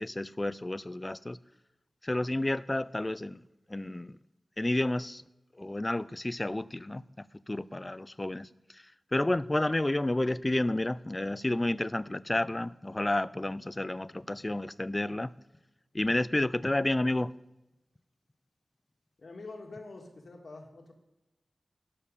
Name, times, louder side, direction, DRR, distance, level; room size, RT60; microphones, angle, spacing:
voice 1, 0.0-1.4 2.0-3.4 3.7-4.2 4.6-5.2 5.6-7.0 7.5-8.8 9.1-15.3 15.9-17.3, left 1 dB, 20° left, 18 dB, 0.3 m, -30 dB
voice 2, 19.2-20.9, left 3 dB, 70° left, 2 dB, 1.8 m, -46 dB
12.5 x 6.8 x 5.3 m, 0.96 s
wide cardioid pair, 100°, 0 cm